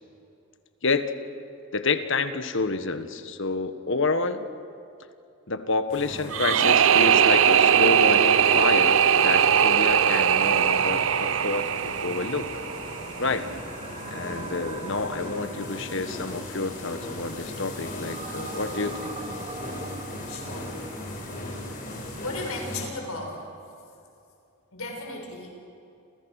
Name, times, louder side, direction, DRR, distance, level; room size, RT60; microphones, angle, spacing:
voice 1, 0.8-1.1 1.7-4.4 5.5-12.6 13.2-13.5 14.1-19.1, left 3 dB, 60° left, 10 dB, 1.5 m, -29 dB
sound 1, 5.9-22.9, left 1 dB, 40° left, 5.0 m, -38 dB
sound 2, 6.3-13.3, right 8 dB, 65° right, 0.6 m, -20 dB
sound 3, 12.6-22.7, right 3 dB, 30° right, 1.3 m, -42 dB
voice 2, 20.3-20.7 22.2-23.4 24.7-25.5, left 2 dB, 80° left, 1 dB, 6.5 m, -35 dB
30.0 x 28.0 x 6.6 m, 2.6 s
head